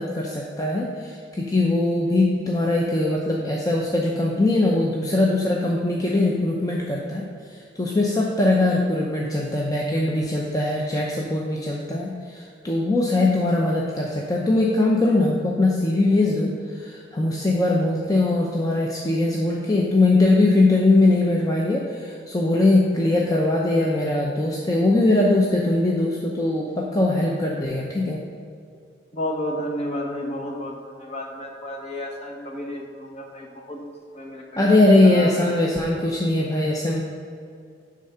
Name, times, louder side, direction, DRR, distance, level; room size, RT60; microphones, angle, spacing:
voice 1, 0.0-28.2 34.6-37.0, left 2 dB, 20° left, -2 dB, 0.6 m, -21 dB
voice 2, 29.1-33.8 34.1-34.7 35.0-35.5, left 1 dB, 35° left, 1 dB, 1.2 m, -31 dB
10.0 x 3.7 x 5.5 m, 2.3 s
head